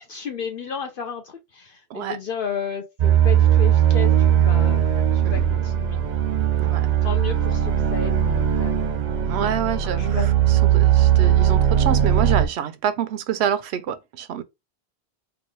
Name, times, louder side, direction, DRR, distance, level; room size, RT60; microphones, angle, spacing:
voice 1, 0.0-4.8 5.3-6.0 7.0-8.9 9.4-10.3, left 7 dB, 60° left, 0.7 m, -33 dB
sound 1, 3.0-12.5, right 10 dB, 55° right, 0.6 m, -19 dB
voice 2, 9.3-10.2 10.5-14.4, right 9 dB, 80° right, 0.8 m, -27 dB
3.9 x 2.3 x 3.1 m
omnidirectional pair, 1.1 m